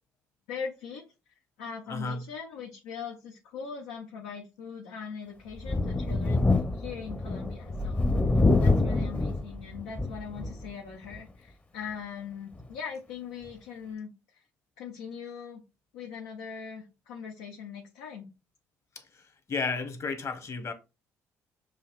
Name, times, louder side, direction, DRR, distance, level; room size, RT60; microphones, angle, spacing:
voice 1, 0.5-1.1 1.6-8.1 8.6-14.4 14.8-15.6 15.9-18.3, left 6 dB, 85° left, 0.9 m, -41 dB
Thunder, 5.6-10.7 11.1-11.2 12.6-12.7, left 2 dB, 20° left, 0.8 m, -26 dB
voice 2, 19.5-20.7, left 4 dB, 40° left, 1.3 m, -32 dB
6.8 x 2.9 x 2.4 m
hypercardioid pair, 60°, 7 cm